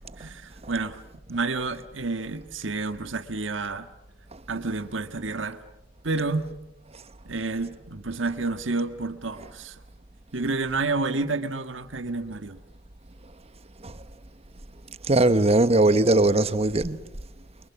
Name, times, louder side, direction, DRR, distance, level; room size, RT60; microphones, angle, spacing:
voice 1, 0.2-1.0 1.3-3.9 4.5-5.6 6.0-6.5 7.2-9.8 10.3-12.6, right 3 dB, 85° right, 1.5 m, -29 dB
voice 2, 15.1-17.0, right 2 dB, 35° right, 1.1 m, -20 dB
29.5 x 24.0 x 7.3 m
head